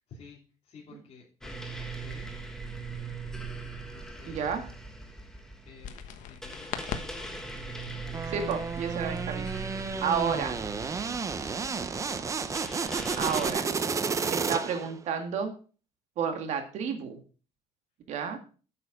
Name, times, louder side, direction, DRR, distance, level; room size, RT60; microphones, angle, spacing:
voice 1, 0.1-0.4 0.6-2.3 3.9-4.5 5.6-6.0 6.3-8.3 9.9-11.0 12.9-13.3 14.3-14.6, left 5 dB, 45° left, -6 dB, 2.9 m, -53 dB
sound 1, 1.4-13.5, right 3 dB, 5° left, 1.5 m, -40 dB
voice 2, 4.3-4.7 8.3-9.5 9.7-10.6 13.2-13.7 14.3-15.5 16.2-17.2 18.1-18.4, right 6 dB, 55° right, 6 dB, 2.0 m, -31 dB
sound 2, 5.8-13.4, left 8 dB, 70° left, 1.2 m, -45 dB
sound 3, 8.1-15.0, right 5 dB, 25° right, 0.7 m, -32 dB
8.7 x 6.9 x 5.2 m, 0.38 s
cardioid pair, 135°, 14 cm